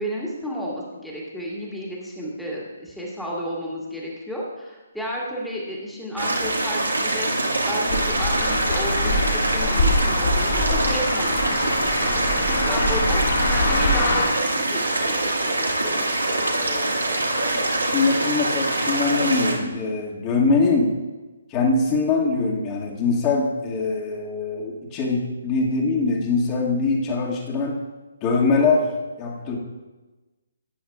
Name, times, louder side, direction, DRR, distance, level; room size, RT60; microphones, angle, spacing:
voice 1, 0.0-7.3 7.6-12.1 12.4-16.1, equal, ahead, -5 dB, 2.1 m, -32 dB
sound 1, 6.2-19.5, right 2 dB, 75° right, 2.1 m, -24 dB
sound 2, 7.9-14.3, left 2 dB, 50° left, 3.7 m, -24 dB
voice 2, 16.5-16.9 17.2-20.9 21.5-27.8 28.2-28.9 29.2-29.6, left 3 dB, 20° left, -2 dB, 2.0 m, -23 dB
18.5 x 9.3 x 2.4 m, 1.2 s
figure-of-eight pair, 135°, 0 cm